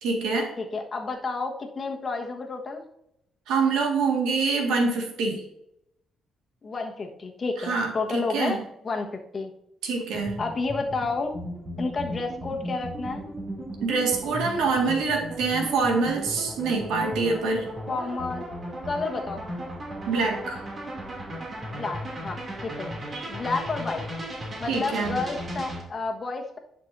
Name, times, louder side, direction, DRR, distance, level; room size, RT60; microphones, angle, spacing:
voice 1, 0.0-0.5 3.5-5.4 7.6-8.6 9.8-10.4 13.8-17.7 20.1-20.6 23.1-23.3 24.7-25.2, right 4 dB, 90° right, 2 dB, 1.9 m, -25 dB
voice 2, 0.6-2.8 6.6-8.6 8.8-9.1 9.3-9.5 10.4-11.4 11.8-13.3 17.9-18.4 18.8-19.5 21.7-22.9 23.3-24.0 24.6-26.6, left 3 dB, 35° left, 3 dB, 1.3 m, -30 dB
sound 1, 10.1-25.8, equal, 40° right, 2.7 m, -36 dB
11.0 x 6.0 x 2.7 m, 0.80 s
cardioid pair, 90°, 0 cm